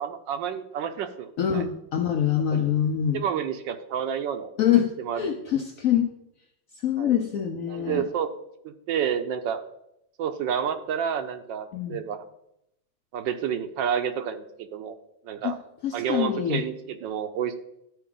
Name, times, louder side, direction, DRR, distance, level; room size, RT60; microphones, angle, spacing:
voice 1, 0.0-1.6 2.5-2.6 3.1-4.5 5.0-5.6 7.0-7.1 7.7-8.3 8.6-9.6 10.2-12.2 13.1-14.4 14.7-14.9 15.3-15.6 15.9-17.5, right 8 dB, 75° right, 8 dB, 1.3 m, -29 dB
voice 2, 1.4-3.2 4.6-4.9 5.2-6.1 6.8-8.0 11.7-12.0 15.4-15.6 15.8-16.6, left 9 dB, 90° left, 5 dB, 0.7 m, -24 dB
12.5 x 4.6 x 3.8 m, 0.80 s
omnidirectional pair, 2.1 m